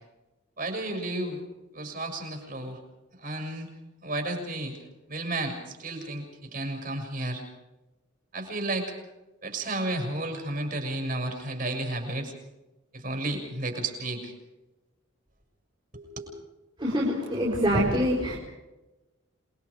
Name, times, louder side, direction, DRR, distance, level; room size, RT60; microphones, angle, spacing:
voice 1, 0.6-1.4 1.7-2.8 3.2-3.7 4.0-4.8 5.1-7.4 8.3-8.9 9.4-12.3 12.9-14.3 15.9-16.3, right 2 dB, 45° right, 4 dB, 6.7 m, -32 dB
voice 2, 16.8-18.4, equal, 25° right, -4 dB, 4.8 m, -25 dB
28.5 x 22.5 x 5.1 m, 1.1 s
head